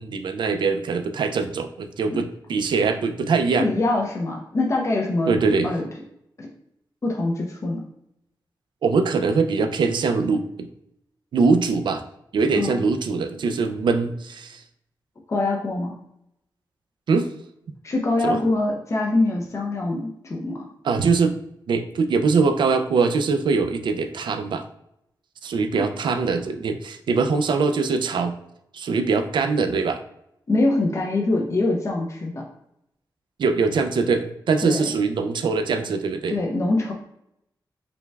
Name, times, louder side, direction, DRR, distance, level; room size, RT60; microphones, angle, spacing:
voice 1, 0.0-3.7 5.3-5.7 8.8-10.7 11.3-12.0 12.3-14.6 17.1-17.3 18.2-18.4 20.8-21.4 21.7-24.6 25.4-28.3 28.7-30.0 33.4-36.4, right 4 dB, 75° right, 8 dB, 0.4 m, -22 dB
voice 2, 3.6-5.4 5.6-5.9 6.4-6.5 7.0-7.9 12.6-12.8 15.3-15.9 17.8-20.7 25.8-25.9 30.5-32.5 34.6-34.9 36.3-36.9, left 2 dB, 40° left, 0 dB, 0.6 m, -24 dB
5.1 x 2.3 x 3.3 m, 0.77 s
wide cardioid pair, 130°, 8 cm